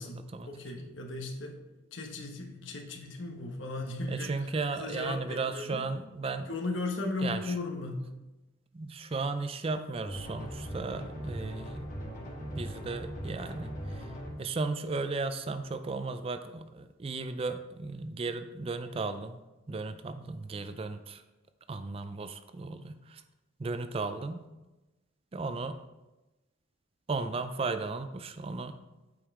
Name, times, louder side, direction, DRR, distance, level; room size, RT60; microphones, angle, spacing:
voice 1, 0.0-1.6 1.9-4.5 4.7-5.9 6.5-8.0, left 2 dB, 75° left, 2 dB, 1.1 m, -36 dB
voice 2, 4.1-6.5 7.2-7.5 8.7-11.9 12.5-14.1 14.4-19.4 19.7-21.2 21.7-23.2 23.6-24.5 25.3-25.8 27.1-28.8, right 3 dB, 30° right, 10 dB, 0.4 m, -35 dB
sound 1, 10.0-14.3, equal, 40° left, 1.7 m, -39 dB
8.3 x 5.3 x 3.6 m, 1.0 s
head